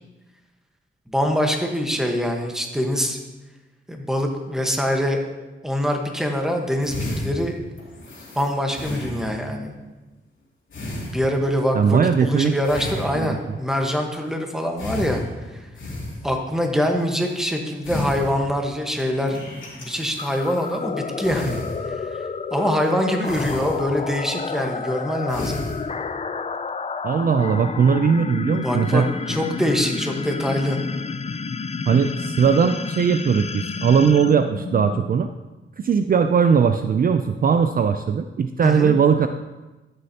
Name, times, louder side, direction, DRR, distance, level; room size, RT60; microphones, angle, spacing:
voice 1, 1.1-3.2 3.9-5.2 5.6-7.6 8.3-9.7 11.1-15.2 15.5-15.6 16.2-19.4 19.8-21.6 21.8-22.2 22.5-25.6 28.6-30.8 38.6-38.9, equal, ahead, 2 dB, 1.2 m, -24 dB
sound 1, 6.5-6.6 6.8-9.6 10.7-11.6 12.6-13.6 14.8-16.4 17.2-17.5 17.8-18.7 19.0-20.8 21.2-22.1 22.7-22.9 23.2-24.1 24.4-24.9 25.3-26.1, left 1 dB, 70° left, 2.6 m, -33 dB
voice 2, 11.7-12.6 13.1-13.3 27.0-29.1 31.9-35.3 35.8-39.3, right 6 dB, 45° right, 8 dB, 0.4 m, -19 dB
sound 2, 20.2-35.3, left 5 dB, 30° left, 0.4 m, -30 dB
13.5 x 6.4 x 2.8 m, 1.1 s
cardioid pair, 90°, 21 cm